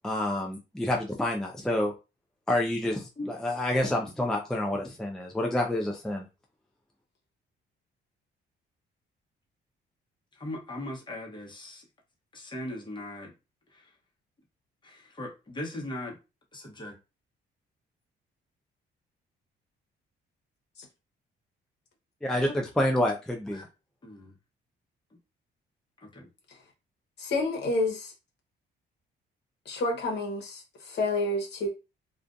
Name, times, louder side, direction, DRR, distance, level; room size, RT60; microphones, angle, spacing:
voice 1, 0.0-1.9 2.5-6.2 22.2-23.1 23.5-23.6, left 1 dB, 5° left, 0.4 m, -28 dB
voice 2, 10.4-11.8 12.3-13.3 13.7-13.9 14.8-16.2 16.5-16.9 23.5-23.7 24.0-24.3 26.0-26.3, left 1 dB, 25° left, 1.0 m, -39 dB
voice 3, 27.2-28.1 29.7-31.7, left 2 dB, 60° left, 0.9 m, -29 dB
2.4 x 2.3 x 2.5 m
cardioid pair, 90°, 20 cm